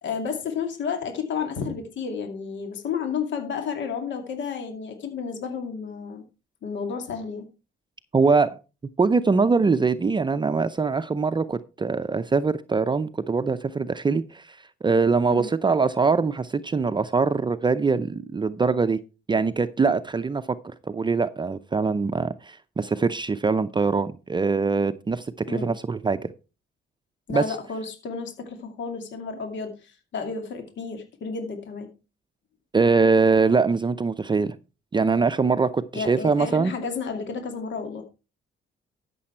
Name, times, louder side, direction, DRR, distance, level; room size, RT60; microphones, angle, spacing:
voice 1, 0.0-6.2 6.6-7.5 15.3-15.5 25.5-25.8 27.3-31.9 35.9-38.0, left 6 dB, 65° left, 2.4 m, -31 dB
voice 2, 8.1-8.6 9.0-19.0 19.3-20.6 20.9-26.3 27.3-27.5 32.7-34.6 34.9-36.7, right 4 dB, 25° right, 0.6 m, -23 dB
13.0 x 6.9 x 4.4 m
cardioid pair, 90°, 20 cm